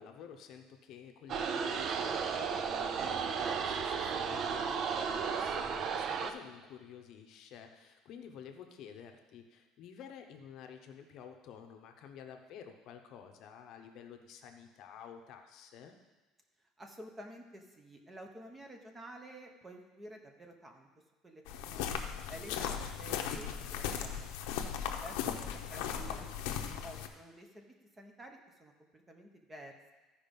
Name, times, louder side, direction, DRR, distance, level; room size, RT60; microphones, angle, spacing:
voice 1, 0.0-15.9, left 8 dB, 50° left, 5 dB, 0.8 m, -51 dB
sound 1, 1.3-6.3, right 6 dB, 35° right, 0.5 m, -34 dB
voice 2, 16.8-20.9 21.2-21.9 22.3-24.7 25.0-29.9, right 1 dB, 10° right, 3 dB, 0.9 m, -51 dB
sound 2, 21.5-27.1, left 8 dB, 90° left, 0.8 m, -37 dB
13.5 x 5.0 x 5.3 m, 1.2 s
cardioid pair, 170°, 0 cm